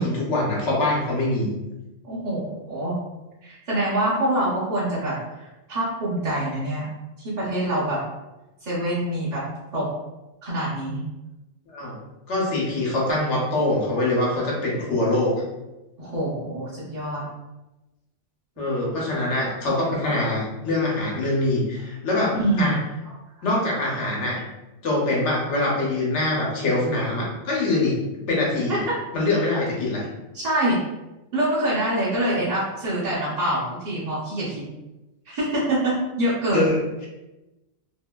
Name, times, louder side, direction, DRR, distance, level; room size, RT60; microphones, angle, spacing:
voice 1, 0.0-1.5 11.7-11.9 12.3-15.3 18.6-22.8 23.4-24.4 24.8-28.0 28.3-28.8 29.1-30.1 36.5-36.8, left 2 dB, 75° left, -4 dB, 1.1 m, -24 dB
voice 2, 2.0-3.0 3.4-6.8 7.2-8.0 8.6-9.4 9.7-9.9 10.4-11.0 16.0-17.2 22.3-22.7 28.7-29.0 30.3-30.8 31.3-34.6 35.3-36.7, right 1 dB, 45° right, -9 dB, 0.7 m, -25 dB
2.7 x 2.5 x 2.2 m, 1.0 s
omnidirectional pair, 1.2 m